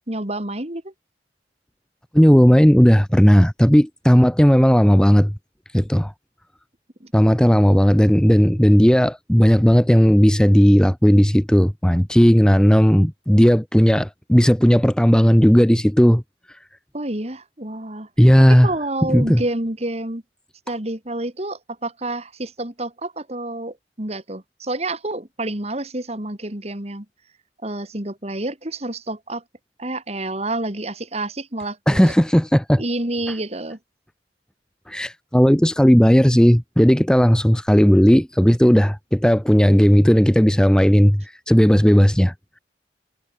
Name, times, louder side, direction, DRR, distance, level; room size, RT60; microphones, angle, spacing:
voice 1, 0.1-0.9 7.0-7.1 16.9-18.1 18.5-20.2 20.7-27.1 27.6-29.4 29.8-32.1 32.8-33.8, right 2 dB, 35° right, 2.7 m, -29 dB
voice 2, 2.1-5.3 5.7-6.1 7.1-16.2 18.2-18.7 19.1-19.4 31.9-32.8 34.9-42.3, equal, 5° left, 0.8 m, -15 dB
head